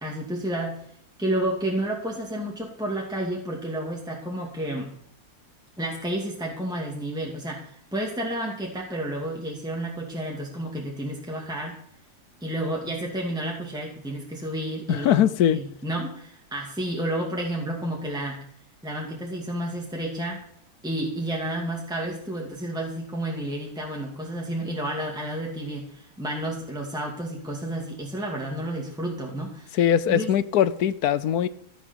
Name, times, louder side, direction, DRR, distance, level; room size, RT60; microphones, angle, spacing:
voice 1, 0.0-0.8 1.2-4.9 5.8-11.8 12.4-18.4 18.8-20.4 20.8-29.8 30.1-30.3, right 1 dB, 5° right, 2.2 m, -31 dB
voice 2, 14.9-15.6 29.7-31.5, left 10 dB, 75° left, 1.2 m, -21 dB
14.5 x 7.2 x 6.9 m
omnidirectional pair, 1.7 m